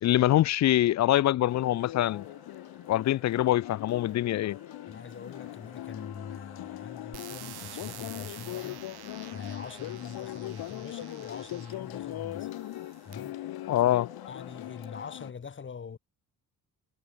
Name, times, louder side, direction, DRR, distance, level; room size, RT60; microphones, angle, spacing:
voice 1, 0.0-2.3 2.9-4.6 13.7-14.1, left 13 dB, 45° left, 0.5 m, -24 dB
sound 1, 1.5-15.3, left 14 dB, 75° left, 1.3 m, -41 dB
sound 2, 1.5-15.2, right 2 dB, 10° right, 4.8 m, -59 dB
voice 2, 4.9-12.5 13.0-13.4 13.8-14.0 14.3-16.0, left 6 dB, 30° left, 6.8 m, -43 dB
sound 3, 7.1-11.9 12.6-13.1, right 14 dB, 80° right, 1.8 m, -48 dB
cardioid pair, 175°, 38 cm